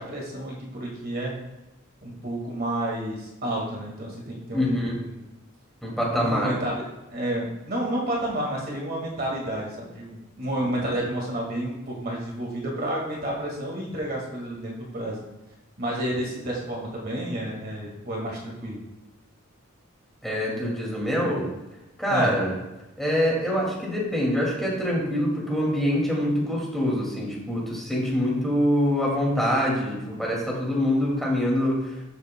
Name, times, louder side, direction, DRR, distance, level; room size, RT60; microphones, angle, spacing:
voice 1, 0.0-1.4 2.0-5.3 6.1-6.8 7.1-15.3 15.8-18.8 22.1-22.4, right 1 dB, 45° right, -2 dB, 1.8 m, -30 dB
voice 2, 4.5-5.0 5.8-6.5 10.8-10.9 20.2-21.5 22.0-22.5 23.0-31.8, equal, ahead, -4 dB, 2.2 m, -25 dB
13.0 x 7.0 x 2.2 m, 0.99 s
head